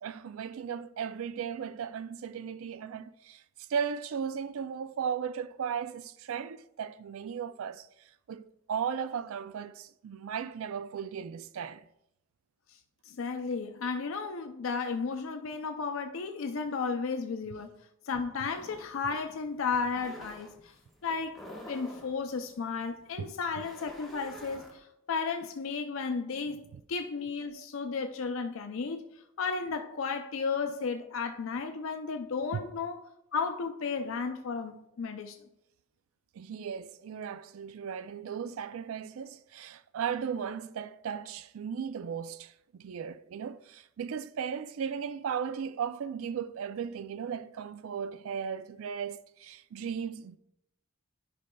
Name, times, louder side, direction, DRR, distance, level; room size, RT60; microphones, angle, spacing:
voice 1, 0.0-7.9 8.3-11.9 23.2-23.3 26.7-26.8 32.5-32.6 36.3-50.4, right 7 dB, 85° right, 0.4 m, -36 dB
voice 2, 13.0-17.7 18.0-20.8 21.0-26.6 26.9-29.1 29.4-33.0 33.3-35.4, left 5 dB, 75° left, 0.5 m, -34 dB
sound 1, 18.5-24.8, left 1 dB, ahead, 1.1 m, -49 dB
9.9 x 5.2 x 2.2 m
head